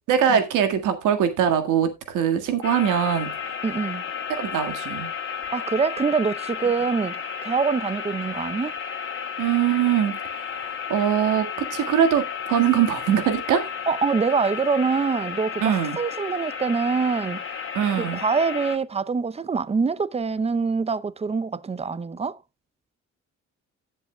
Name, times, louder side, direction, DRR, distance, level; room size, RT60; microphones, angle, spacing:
voice 1, 0.1-3.3 4.3-5.1 9.4-10.1 10.6-13.7 15.6-16.0 17.7-18.2, right 9 dB, 90° right, 1.8 m, -22 dB
sound 1, 2.6-18.8, left 7 dB, 45° left, 2.0 m, -33 dB
voice 2, 3.6-4.0 5.5-8.7 13.9-17.4 17.9-22.4, right 5 dB, 20° right, 0.6 m, -25 dB
18.0 x 7.4 x 2.2 m
cardioid pair, 90°, 30 cm